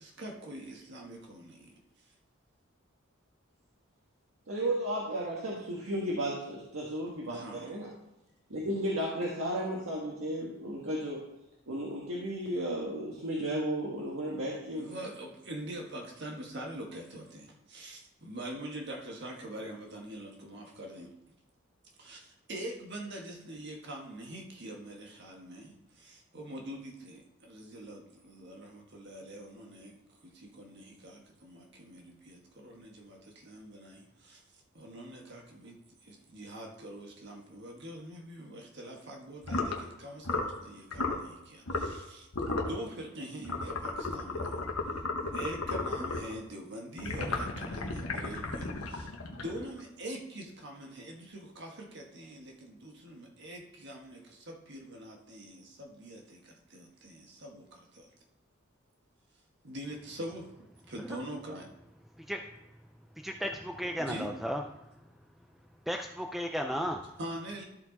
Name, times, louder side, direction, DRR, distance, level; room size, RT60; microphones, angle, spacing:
voice 1, 0.0-1.7 7.2-7.7 14.8-21.1 22.0-30.0 30.2-34.4 34.7-35.8 36.0-44.5 45.2-58.1 59.6-60.5 60.9-61.7 64.0-64.3 67.2-67.6, right 1 dB, 55° right, 1 dB, 1.6 m, -44 dB
voice 2, 4.5-7.9 8.5-11.2 11.7-14.9, right 1 dB, 80° right, -4 dB, 1.5 m, -34 dB
sound 1, 39.4-39.8 40.2-40.6 40.9-41.2 41.7-42.0 42.3-42.8 43.4-46.3 47.0-49.8, left 3 dB, 85° left, 1.2 m, -34 dB
voice 3, 63.2-64.6 65.9-67.1, equal, ahead, 3 dB, 0.3 m, -34 dB
13.5 x 4.5 x 4.1 m, 0.92 s
head